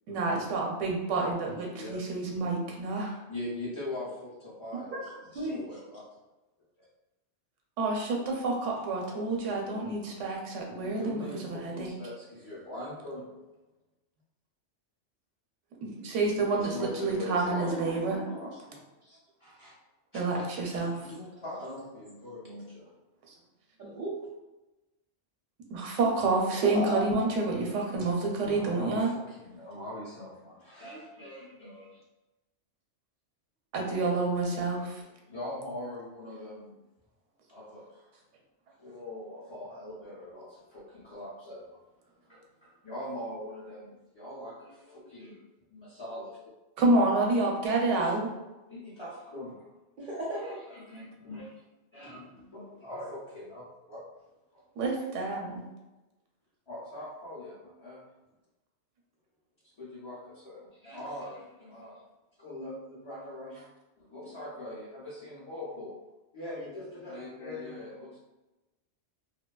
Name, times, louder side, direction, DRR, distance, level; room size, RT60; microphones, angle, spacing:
voice 1, 0.1-3.2 7.8-11.9 15.8-16.7 17.0-18.2 20.1-21.0 25.7-29.1 33.7-35.0 46.8-48.3 54.8-55.6, right 3 dB, 85° right, -1 dB, 0.9 m, -28 dB
voice 2, 1.7-2.3 3.3-5.0 5.5-6.0 10.7-13.5 16.2-18.8 19.4-19.7 20.1-20.2 21.0-22.9 27.5-27.8 28.4-32.0 34.0-34.1 34.6-36.7 37.5-38.2 38.8-41.8 42.3-45.4 45.7-46.4 47.9-48.1 48.7-49.7 50.3-51.5 51.9-53.6 53.9-54.0 54.5-54.6 55.3-55.4 56.7-58.1 59.8-62.0 62.4-63.6 64.0-66.0 66.3-68.2, left 1 dB, 40° left, -10 dB, 0.4 m, -42 dB
voice 3, 4.9-5.8 17.3-17.8 18.1-18.5 19.0-19.2 20.3-21.1 23.8-24.2 26.6-27.1 50.0-50.6, right 1 dB, 60° right, -5 dB, 0.6 m, -36 dB
2.6 x 2.2 x 2.2 m, 1.0 s
omnidirectional pair, 1.2 m